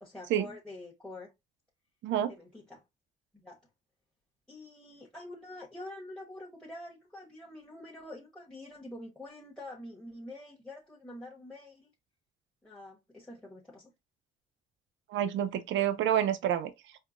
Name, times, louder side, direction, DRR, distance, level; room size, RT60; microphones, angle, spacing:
voice 1, 0.0-1.3 2.2-2.8 3.3-3.6 4.5-11.9 12.6-13.9, left 1 dB, 5° left, 1.0 m, -46 dB
voice 2, 2.0-2.3 15.1-16.7, right 10 dB, 70° right, 0.5 m, -28 dB
4.5 x 2.1 x 2.5 m
cardioid pair, 90°, 20 cm